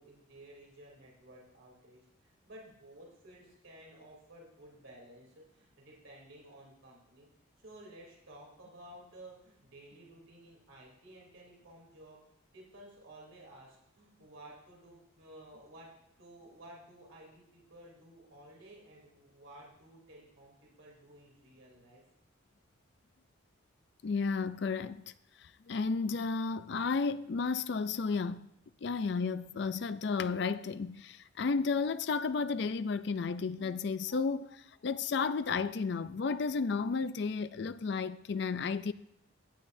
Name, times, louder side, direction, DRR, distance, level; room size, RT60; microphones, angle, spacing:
voice 1, 0.0-7.3 7.6-12.2 12.5-15.9 16.2-22.0, right 1 dB, 80° right, 3.1 m, -54 dB
voice 2, 24.0-25.1 25.4-28.5 28.8-38.9, left 4 dB, 55° left, 0.4 m, -33 dB
15.0 x 9.8 x 2.6 m
head